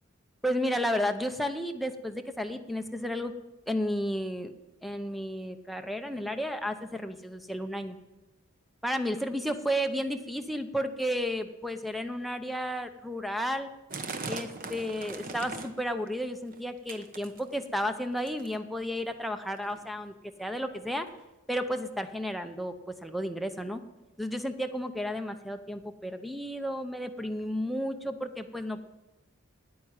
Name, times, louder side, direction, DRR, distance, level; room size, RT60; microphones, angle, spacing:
voice 1, 0.4-3.3 3.7-4.5 4.8-8.0 8.8-13.7 14.3-21.1 21.5-23.8 24.2-28.8, equal, ahead, 5 dB, 0.7 m, -32 dB
sound 1, 13.9-15.9 16.2-16.6 16.9-17.8 18.3-18.6 19.4-19.5 19.6-19.8 20.4-20.5 21.2-21.3, right 3 dB, 40° right, 1.0 m, -39 dB
9.5 x 9.5 x 8.9 m, 1.0 s
head